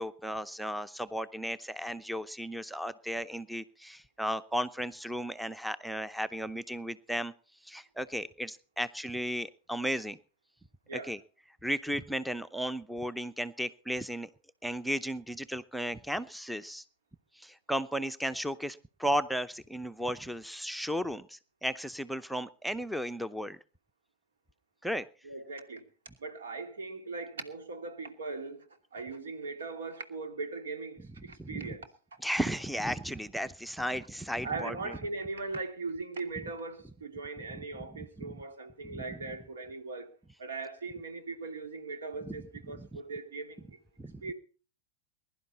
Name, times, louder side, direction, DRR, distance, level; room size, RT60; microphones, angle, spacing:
voice 1, 0.0-7.3 7.6-10.2 10.9-11.2 11.6-14.3 14.6-16.8 17.3-23.6 24.8-25.1 31.4-31.6 32.2-35.0 37.5-37.6 38.2-38.4 38.8-39.0 42.2-42.4 42.7-42.9 44.0-44.2, equal, ahead, 0.7 m, -35 dB
voice 2, 25.2-25.8 26.2-31.9 34.4-40.1 40.4-43.8 44.2-44.3, right 3 dB, 75° right, 2.6 m, -39 dB
21.5 x 11.5 x 4.2 m
hypercardioid pair, 95°, 0 cm